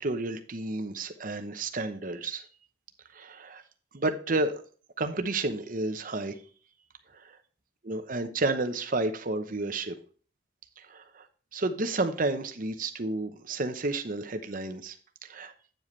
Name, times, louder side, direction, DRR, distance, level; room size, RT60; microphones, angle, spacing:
voice 1, 0.0-2.4 3.1-3.6 3.9-4.6 5.0-6.4 7.1-7.4 7.8-9.9 10.8-11.3 11.5-15.0 15.2-15.5, right 2 dB, 50° right, 8 dB, 0.9 m, -31 dB
9.0 x 7.5 x 3.2 m, 0.41 s
head